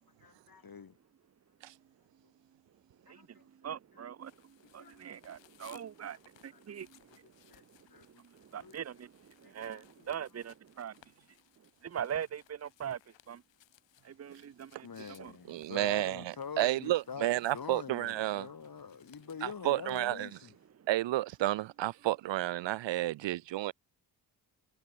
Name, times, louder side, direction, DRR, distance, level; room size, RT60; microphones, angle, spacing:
voice 1, 0.2-1.0 3.1-3.5 3.9-4.1 4.8-5.0 5.6-5.8 6.1-6.2 6.5-6.6 7.5-7.6 7.9-8.2 8.6-8.8 9.4-10.1 14.8-20.5, left 6 dB, 55° left, 3.4 m, -46 dB
voice 2, 3.1-10.9 11.8-13.0 13.3-13.4 14.0-14.9 15.2-15.3 20.8-20.9, right 9 dB, 35° right, 0.8 m, -42 dB
sound 1, 4.2-20.4, left 13 dB, 90° left, 3.8 m, -65 dB
voice 3, 15.5-18.5 19.4-20.3 20.9-23.7, right 15 dB, 80° right, 0.9 m, -31 dB
supercardioid pair, 45°, 43 cm